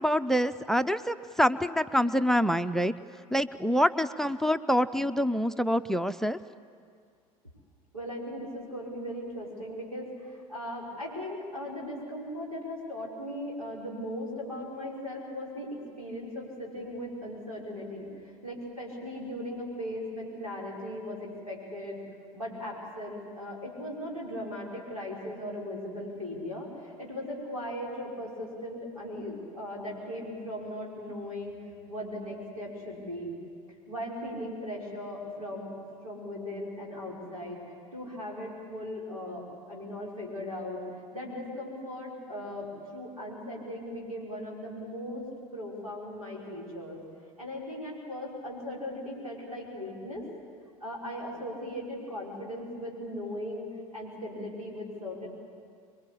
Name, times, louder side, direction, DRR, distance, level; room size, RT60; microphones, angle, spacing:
voice 1, 0.0-2.9 3.3-6.4, equal, ahead, 15 dB, 0.6 m, -26 dB
voice 2, 7.9-22.0 22.3-31.5 31.9-33.3 33.9-35.7 36.0-37.6 37.9-40.8 41.1-45.2 45.5-47.0 47.4-50.2 50.8-55.3, left 1 dB, 90° right, -4 dB, 5.8 m, -38 dB
26.5 x 22.5 x 8.5 m, 2.2 s
figure-of-eight pair, 70°, 18 cm